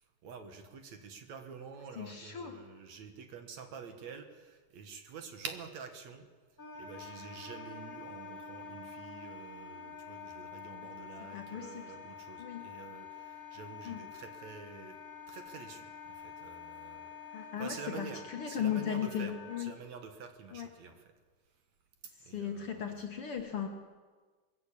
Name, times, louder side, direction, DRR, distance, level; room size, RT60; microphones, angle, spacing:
voice 1, 0.0-6.3 6.8-15.0 15.3-21.1 22.2-23.0, right 5 dB, 60° right, 6 dB, 2.6 m, -48 dB
voice 2, 2.0-2.6 11.2-11.9 12.4-12.7 13.9-14.0 17.3-19.7 20.5-20.7 22.1-23.7, left 8 dB, 55° left, 3 dB, 1.8 m, -37 dB
Wind instrument woodwind instrument, 6.6-19.6, left 6 dB, 5° left, 3.8 m, -48 dB
21.0 x 14.5 x 8.6 m, 1.4 s
omnidirectional pair, 3.7 m